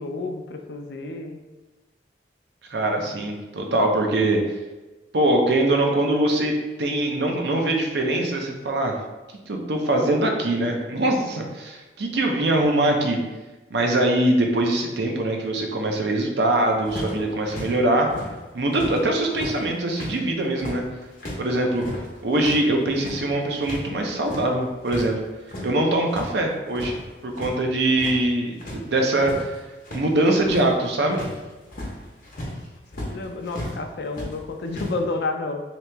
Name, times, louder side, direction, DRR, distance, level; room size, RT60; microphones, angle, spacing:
voice 1, 0.0-1.4 33.1-35.6, left 3 dB, 70° left, 5 dB, 0.4 m, -30 dB
voice 2, 2.7-4.4 5.1-8.9 9.5-13.2 13.7-18.1 18.5-20.8 21.4-21.8 22.2-25.1 25.6-26.9 27.2-29.5 29.9-31.2, right 1 dB, 75° right, 2 dB, 0.6 m, -22 dB
sound 1, 16.9-19.0 19.3-23.9 24.1-25.1 25.4-26.3 26.6-27.6 27.8-28.3 28.6-33.8 34.1-35.0, equal, 50° left, 0.9 m, -35 dB
2.9 x 2.8 x 3.3 m, 1.2 s
head